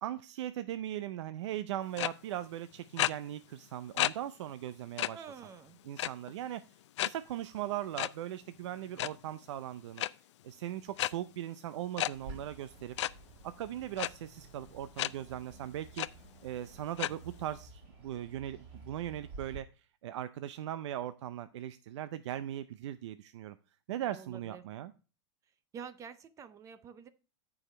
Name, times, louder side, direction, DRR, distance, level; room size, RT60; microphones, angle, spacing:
voice 1, 0.0-5.2 5.8-6.6 7.0-10.0 10.4-12.9 13.4-16.1 16.4-23.6 23.9-24.9, right 12 dB, 80° right, 13 dB, 0.5 m, -39 dB
sound 1, 2.0-2.1 3.0-3.1 4.0-4.1 4.5-4.6 5.0-5.1 6.0-6.3 7.0-7.1 8.0-8.1 8.8-9.1 10.0-10.1 11.0-11.1 12.0-12.1 13.0-13.1 14.0-14.1 15.0-15.1 15.6-15.7 16.0-16.1 17.0-17.1, left 14 dB, 90° left, 0.4 m, -30 dB
voice 2, 5.1-5.8 24.1-24.6 25.7-27.1, right 7 dB, 20° right, 14 dB, 0.5 m, -48 dB
Bird, 12.1-19.6, right 3 dB, 40° right, 5.1 m, -52 dB
14.0 x 4.9 x 3.2 m, 0.34 s
supercardioid pair, 150°, 15 cm